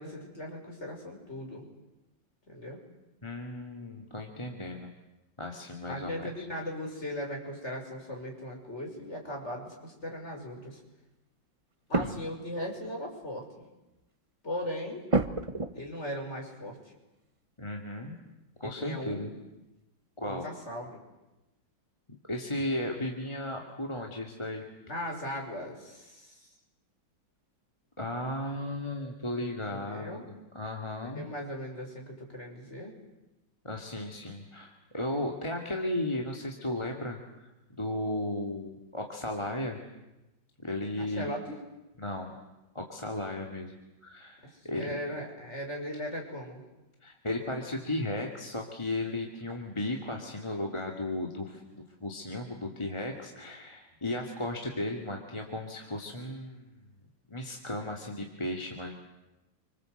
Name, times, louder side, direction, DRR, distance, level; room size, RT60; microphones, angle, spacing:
voice 1, 0.0-1.7 2.5-2.8 5.9-10.8 11.9-13.6 14.4-15.0 15.7-16.8 18.6-19.3 20.2-21.0 24.9-26.4 29.6-30.2 31.0-32.9 41.0-41.6 44.4-44.5 44.8-46.6, equal, 35° left, 1 dB, 6.2 m, -38 dB
voice 2, 3.2-4.9 5.4-6.5 12.0-12.2 17.6-18.1 18.6-19.3 20.2-20.5 22.3-24.7 28.0-30.2 30.5-31.2 33.6-39.8 40.6-41.3 42.0-42.3 42.7-43.7 44.0-45.0 47.0-56.7 57.3-58.9, left 1 dB, 15° left, 1 dB, 2.5 m, -35 dB
sound 1, 8.2-8.3 9.3-9.6 11.9-12.5 12.8-12.9 13.2-13.3 13.9-14.0 15.1-16.0 18.2-18.3 18.6-19.2 19.7-19.8, right 3 dB, 25° right, 0.7 m, -31 dB
28.5 x 25.5 x 8.1 m, 1.0 s
omnidirectional pair, 2.0 m